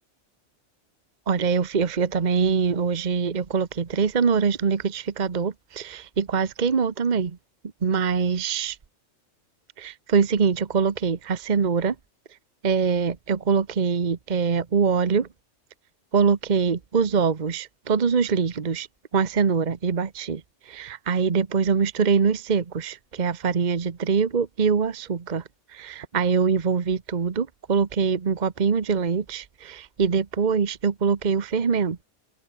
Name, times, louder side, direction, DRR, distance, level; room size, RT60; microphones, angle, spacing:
voice 1, 1.3-7.4 7.8-8.8 9.8-11.9 12.6-15.3 16.1-18.9 19.1-25.4 25.7-32.0, right 5 dB, 40° right, 1.1 m, -23 dB
omnidirectional pair, 1.3 m